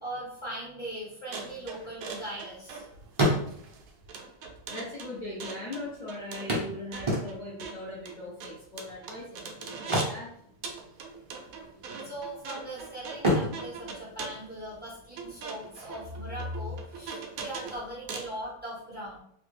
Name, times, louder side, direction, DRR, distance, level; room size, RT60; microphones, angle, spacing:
voice 1, 0.0-2.9 9.7-9.8 12.0-19.2, equal, 5° right, -8 dB, 1.2 m, -39 dB
sound 1, 1.3-10.2 10.6-18.4, right 4 dB, 70° right, 0.9 m, -41 dB
sound 2, 1.8-2.7 3.0-3.9 4.8-4.9 5.1-5.2 6.5-7.7 9.7-11.0 11.3-11.6 12.1-12.7 13.1-14.9 16.9-17.0 17.4-17.5, equal, 30° right, 0.5 m, -30 dB
voice 2, 4.7-10.3, left 1 dB, 40° left, -7 dB, 0.6 m, -40 dB
3.1 x 2.4 x 3.2 m, 0.68 s
omnidirectional pair, 1.8 m